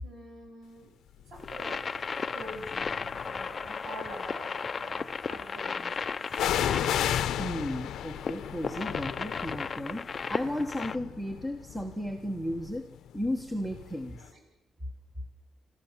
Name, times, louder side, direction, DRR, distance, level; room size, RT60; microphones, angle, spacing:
voice 1, 0.0-0.9 1.3-6.5 14.3-14.4, right 1 dB, 60° right, 3 dB, 7.5 m, -46 dB
sound 1, 1.4-1.8 2.5-3.4 6.3-14.0 14.3-14.4, left 11 dB, 80° left, 0.7 m, -34 dB
sound 2, 1.4-11.0, left 5 dB, 30° left, 0.6 m, -35 dB
voice 2, 7.4-12.9 13.1-14.3, left 1 dB, 5° right, 5 dB, 1.2 m, -34 dB
28.5 x 13.5 x 7.3 m, 0.90 s
cardioid pair, 150°, 0 cm